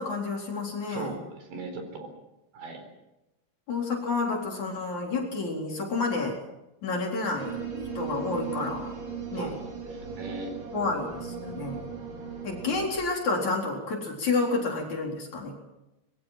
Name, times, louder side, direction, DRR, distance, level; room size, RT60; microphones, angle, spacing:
voice 1, 0.0-1.1 3.7-6.4 6.8-7.6 8.0-9.0 9.3-9.5 10.7-11.9 12.4-15.6, left 3 dB, 40° left, 0 dB, 5.0 m, -30 dB
voice 2, 0.9-2.1 2.5-2.9 9.3-10.5, right 3 dB, 75° right, 6 dB, 6.4 m, -39 dB
sound 1, 7.4-12.9, right 5 dB, 60° right, 6.7 m, -37 dB
24.5 x 22.5 x 5.9 m, 0.96 s
omnidirectional pair, 5.2 m